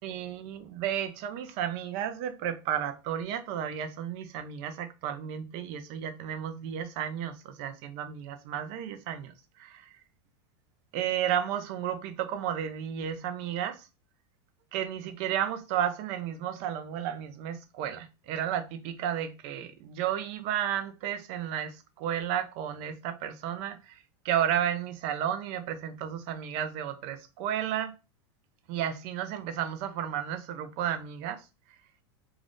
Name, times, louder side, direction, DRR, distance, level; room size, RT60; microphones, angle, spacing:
voice 1, 0.0-9.9 10.9-13.9 14.7-27.9 28.7-31.4, right 10 dB, 50° right, 0.5 m, -33 dB
2.5 x 2.4 x 3.4 m
supercardioid pair, 140°, 15 cm